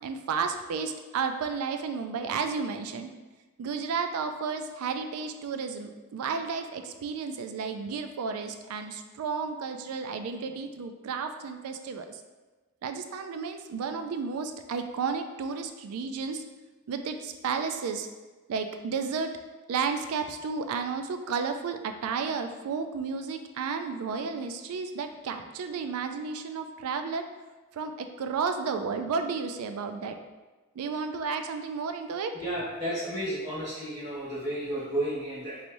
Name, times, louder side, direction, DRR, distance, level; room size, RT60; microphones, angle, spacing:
voice 1, 0.0-3.1 3.6-12.2 12.8-16.4 16.9-18.1 18.5-19.3 19.7-27.3 27.7-30.2 30.8-32.3, right 5 dB, 75° right, 7 dB, 0.3 m, -32 dB
voice 2, 32.3-35.6, right 1 dB, 30° right, -11 dB, 1.4 m, -32 dB
3.2 x 3.0 x 2.6 m, 1.2 s
head